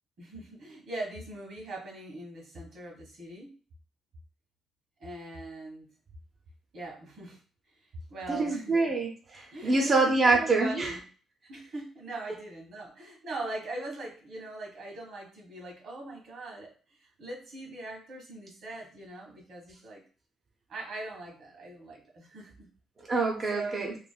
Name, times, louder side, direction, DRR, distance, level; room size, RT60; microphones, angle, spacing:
voice 1, 0.2-3.5 5.0-5.9 6.7-7.4 8.1-8.8 9.5-11.0 11.5-16.7 17.0-20.0 20.7-22.7 23.5-24.0, right 2 dB, 70° right, 0 dB, 1.4 m, -41 dB
voice 2, 8.4-10.9 23.1-23.9, right 3 dB, 35° right, -1 dB, 0.5 m, -25 dB
3.0 x 2.5 x 2.2 m, 0.40 s
cardioid pair, 90°, 0 cm